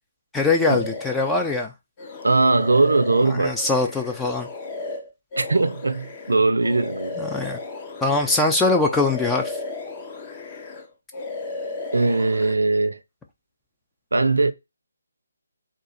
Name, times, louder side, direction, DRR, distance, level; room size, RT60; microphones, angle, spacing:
voice 1, 0.3-1.7 3.3-4.5 7.2-7.6 8.0-9.6, left 3 dB, 5° left, 0.4 m, -22 dB
sound 1, 0.6-1.6 2.0-8.6 8.9-10.9 11.1-12.5, left 3 dB, 25° left, 0.7 m, -34 dB
voice 2, 2.2-3.6 5.4-7.2 11.9-13.0 14.1-14.5, right 3 dB, 75° right, 0.5 m, -20 dB
3.7 x 2.4 x 4.1 m
figure-of-eight pair, 150°, 0 cm